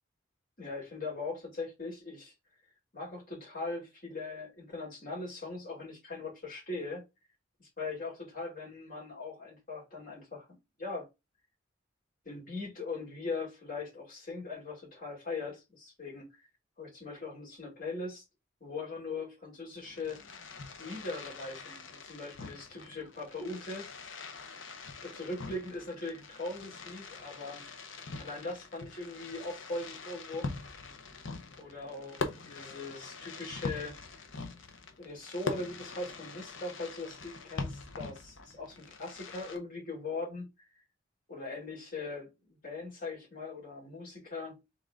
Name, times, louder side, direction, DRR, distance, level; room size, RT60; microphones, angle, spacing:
voice 1, 0.6-2.3 2.9-7.0 7.8-10.5 10.8-11.1 12.2-16.3 16.8-18.2 18.6-20.2 20.8-23.9 25.0-27.7 28.2-30.6 31.6-34.0 35.0-40.5 41.3-44.6, left 3 dB, 45° left, 2.9 m, -40 dB
Fireworks, 19.7-39.6, left 3 dB, 80° left, 0.9 m, -43 dB
3.8 x 3.7 x 3.7 m
head